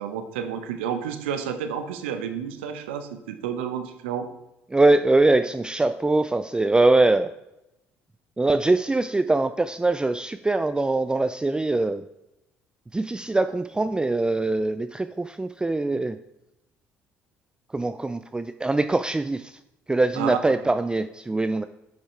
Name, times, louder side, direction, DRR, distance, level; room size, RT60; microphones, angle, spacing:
voice 1, 0.0-4.3 20.1-20.4, right 8 dB, 85° right, 8 dB, 0.9 m, -30 dB
voice 2, 4.7-7.3 8.4-12.0 12.9-16.2 17.7-19.6 19.9-21.7, right 2 dB, 15° right, 11 dB, 0.4 m, -22 dB
11.0 x 5.5 x 4.4 m, 0.90 s
hypercardioid pair, 60°, 6 cm